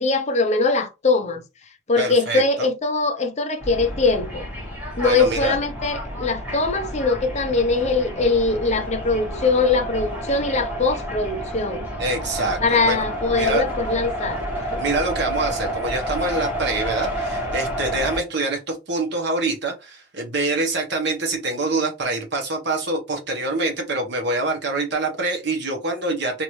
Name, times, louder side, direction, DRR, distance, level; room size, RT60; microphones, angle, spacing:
voice 1, 0.0-1.4 1.9-4.5 5.0-11.9 12.6-14.8, left 3 dB, 35° left, 0.6 m, -22 dB
voice 2, 2.0-2.4 5.0-5.6 12.0-13.0 13.3-13.6 14.8-26.4, right 2 dB, 60° right, 1.1 m, -25 dB
sound 1, 3.6-18.2, right 1 dB, 10° right, 1.0 m, -30 dB
3.0 x 2.6 x 3.0 m
head